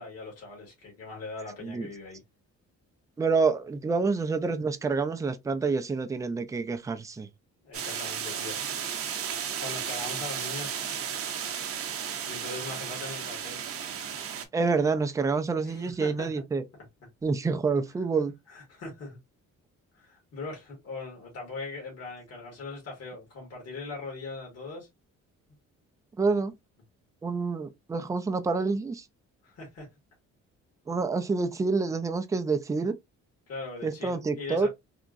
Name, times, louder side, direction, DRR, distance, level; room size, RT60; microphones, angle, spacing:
voice 1, 0.0-2.2 7.6-8.6 9.6-10.8 12.3-13.6 15.6-16.4 18.5-19.2 19.9-24.9 29.4-29.9 33.5-34.7, left 3 dB, 55° left, 1.9 m, -40 dB
voice 2, 3.2-7.3 14.5-16.6 17.2-18.3 26.2-26.5 27.2-29.0 30.9-33.0 33.8-34.7, right 4 dB, 10° right, 0.3 m, -27 dB
sound 1, 7.7-14.4, right 8 dB, 50° right, 0.7 m, -34 dB
3.5 x 2.9 x 2.5 m
cardioid pair, 130°, 30 cm